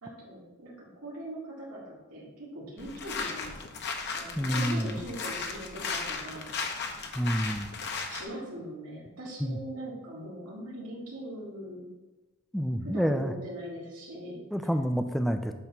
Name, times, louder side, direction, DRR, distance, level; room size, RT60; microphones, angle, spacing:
voice 1, 0.0-3.6 4.1-6.5 8.1-11.9 12.8-14.7, right 1 dB, 85° right, -5 dB, 2.1 m, -41 dB
sound 1, 2.8-8.3, left 4 dB, 50° left, 0.8 m, -36 dB
voice 2, 4.4-5.0 7.2-7.7 9.4-9.6 12.5-13.3 14.5-15.5, equal, ahead, 7 dB, 0.3 m, -28 dB
8.8 x 3.1 x 5.9 m, 1.2 s
head